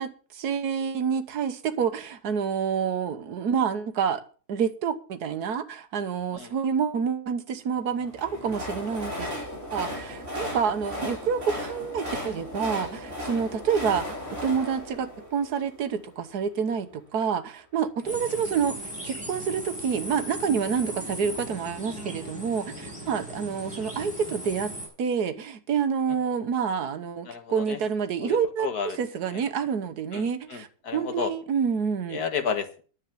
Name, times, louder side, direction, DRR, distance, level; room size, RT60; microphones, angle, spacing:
voice 1, 0.0-4.2 4.5-9.3 9.7-24.7 25.0-28.7 29.0-30.7 30.9-32.2, right 6 dB, 80° right, 1.6 m, -28 dB
Train, 8.0-16.1, left 1 dB, 50° right, 5.6 m, -36 dB
voice 2, 18.1-18.4 27.2-27.8 28.2-29.0 29.3-29.4 30.1-31.3 32.1-32.8, left 6 dB, 80° left, 2.0 m, -32 dB
sound 1, 18.1-24.9, equal, 5° right, 5.5 m, -38 dB
10.0 x 8.2 x 7.1 m
omnidirectional pair, 1.6 m